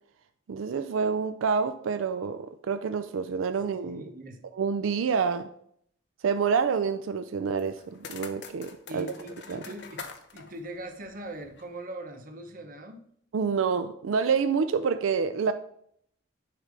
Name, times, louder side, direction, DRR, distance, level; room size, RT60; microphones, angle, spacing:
voice 1, 0.5-4.0 4.5-5.5 6.2-9.1 9.5-9.6 13.3-15.5, right 5 dB, 85° right, 0.4 m, -27 dB
voice 2, 3.8-4.4 8.9-10.0 10.3-13.0, right 1 dB, 45° right, 0.9 m, -41 dB
sound 1, 7.6-11.8, left 5 dB, 60° left, 0.7 m, -45 dB
9.6 x 3.4 x 5.0 m
head